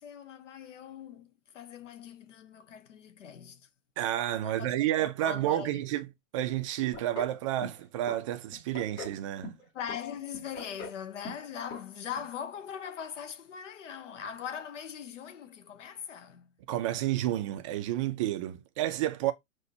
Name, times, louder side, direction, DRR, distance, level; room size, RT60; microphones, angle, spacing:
voice 1, 0.0-3.7 4.4-5.8 9.7-16.5, left 8 dB, 60° left, 0.9 m, -41 dB
voice 2, 4.0-6.1 6.3-9.5 16.7-19.3, right 13 dB, 25° right, 0.4 m, -30 dB
sound 1, 6.9-7.4 7.6-8.2 8.5-9.2 9.4-10.0 10.3-11.0 11.2-11.5 11.7-11.8 12.2-12.3, left 3 dB, 25° left, 2.9 m, -41 dB
5.7 x 2.7 x 2.7 m
figure-of-eight pair, 110°, 42 cm